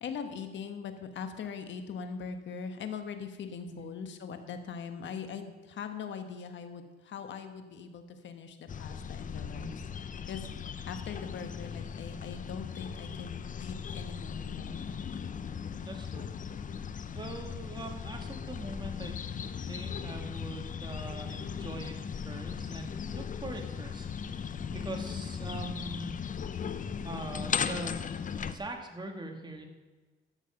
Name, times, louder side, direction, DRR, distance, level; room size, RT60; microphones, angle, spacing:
voice 1, 0.0-9.8 10.3-10.6 10.9-14.8 17.5-17.6, left 6 dB, 65° left, 7 dB, 1.4 m, -41 dB
sound 1, 8.7-28.5, left 7 dB, 40° left, 0.7 m, -38 dB
voice 2, 15.8-16.3 17.2-19.2 19.7-26.1 27.0-28.1 28.4-29.7, right 2 dB, 20° right, 3 dB, 2.2 m, -42 dB
13.0 x 7.2 x 5.9 m, 1.3 s
cardioid pair, 90°, 20 cm